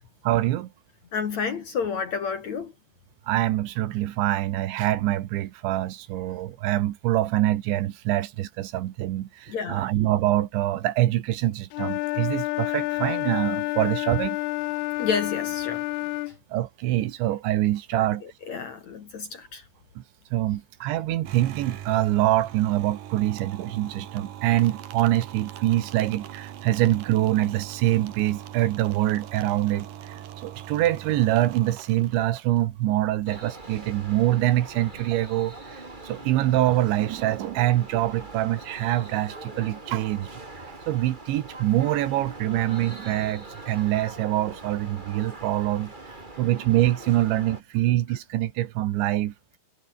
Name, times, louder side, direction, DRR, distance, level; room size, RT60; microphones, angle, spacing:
voice 1, 0.2-0.7 3.3-14.4 16.5-18.2 20.0-20.1 20.3-29.9 30.4-40.4 40.9-45.9 46.4-49.3, right 14 dB, 80° right, 3.7 m, -25 dB
voice 2, 1.1-2.7 9.5-9.9 15.0-15.8 16.3-16.4 17.9-19.7, left 6 dB, 50° left, 2.4 m, -30 dB
Wind instrument woodwind instrument, 11.7-16.4, left 21 dB, 90° left, 2.3 m, -29 dB
sound 1, 21.2-32.6, right 11 dB, 60° right, 2.7 m, -41 dB
sound 2, 33.2-47.6, right 2 dB, 15° right, 1.9 m, -42 dB
omnidirectional pair, 5.3 m